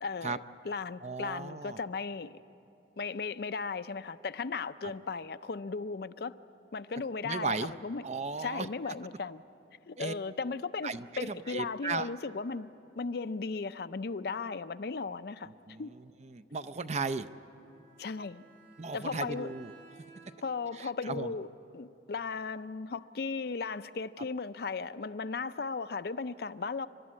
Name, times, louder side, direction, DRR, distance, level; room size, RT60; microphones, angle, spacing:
voice 1, 0.0-2.3 3.0-6.4 6.7-8.0 8.4-9.4 9.9-12.7 13.0-15.5 15.8-15.9 18.0-18.4 18.9-19.5 20.4-21.5 21.7-26.9, left 4 dB, 60° left, 12 dB, 0.5 m, -36 dB
voice 2, 1.0-1.8 4.8-4.9 7.2-7.7 8.0-8.7 10.0-10.1 10.8-12.1 15.5-17.3 18.8-19.7 20.7-21.3 24.2-24.3, right 4 dB, 40° right, 12 dB, 0.5 m, -36 dB
Bowed string instrument, 17.6-20.6, right 4 dB, 80° right, 6.3 m, -57 dB
29.5 x 12.5 x 9.6 m, 2.9 s
head